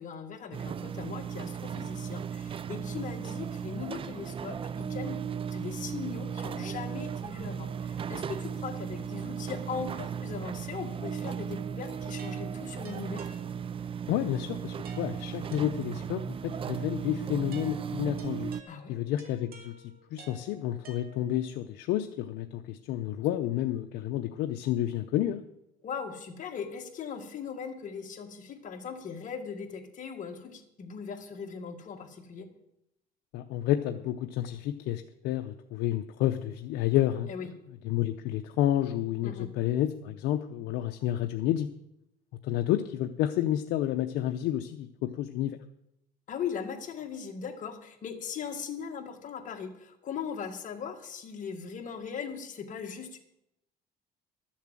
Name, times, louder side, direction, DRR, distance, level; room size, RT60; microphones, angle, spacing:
voice 1, 0.0-13.3 18.7-19.0 25.8-32.5 37.3-37.5 39.2-39.5 46.3-53.2, left 6 dB, 50° left, 4 dB, 1.8 m, -39 dB
sound 1, 0.5-18.6, right 7 dB, 30° right, 0.4 m, -36 dB
sound 2, 12.2-14.0 14.8-16.3 17.5-21.6, right 4 dB, 65° right, 2.4 m, -52 dB
voice 2, 14.1-18.5 18.9-25.4 33.3-37.3 37.8-41.7 42.4-45.6, left 12 dB, 90° left, 6 dB, 0.7 m, -30 dB
12.0 x 7.3 x 7.5 m, 0.83 s
cardioid pair, 110°, 17 cm